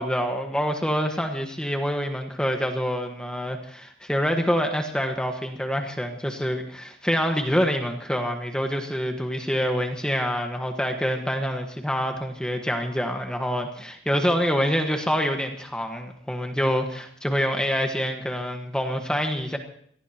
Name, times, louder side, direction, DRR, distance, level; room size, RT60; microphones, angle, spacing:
voice 1, 0.0-19.6, equal, 5° left, 4 dB, 1.4 m, -26 dB
25.5 x 18.5 x 3.0 m, 0.62 s
head